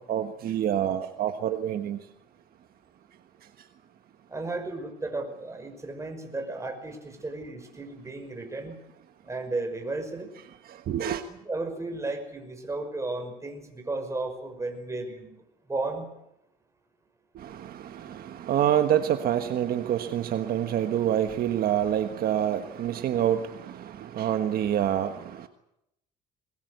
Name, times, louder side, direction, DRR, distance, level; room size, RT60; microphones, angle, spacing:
voice 1, 0.1-2.0 10.7-11.2 17.3-25.5, right 10 dB, 60° right, 1.4 m, -27 dB
voice 2, 4.3-8.8 9.2-10.3 11.3-15.3 15.7-16.1, right 2 dB, 15° right, 5.7 m, -34 dB
22.0 x 21.5 x 8.2 m
cardioid pair, 110°, 17 cm